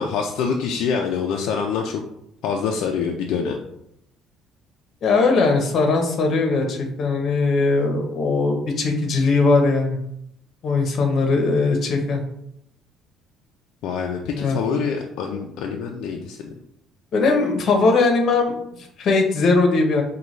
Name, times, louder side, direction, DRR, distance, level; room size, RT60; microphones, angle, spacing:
voice 1, 0.0-2.0 2.4-3.6 13.8-16.4, left 6 dB, 70° left, 1 dB, 0.4 m, -25 dB
voice 2, 5.0-10.0 10.6-12.2 14.3-14.6 17.1-20.0, left 3 dB, 45° left, 3 dB, 0.8 m, -20 dB
5.2 x 2.3 x 3.1 m, 0.76 s
cardioid pair, 135°, 0 cm